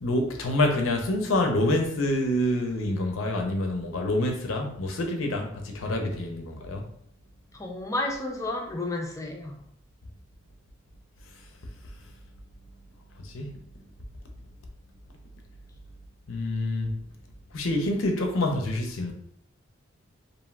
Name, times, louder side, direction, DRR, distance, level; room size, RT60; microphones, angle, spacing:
voice 1, 0.0-6.9 13.2-13.5 16.3-16.9 17.5-19.1, left 1 dB, 80° left, 3 dB, 0.6 m, -27 dB
voice 2, 7.5-9.5, left 2 dB, 15° left, 1 dB, 0.5 m, -31 dB
3.2 x 2.5 x 2.4 m, 0.66 s
head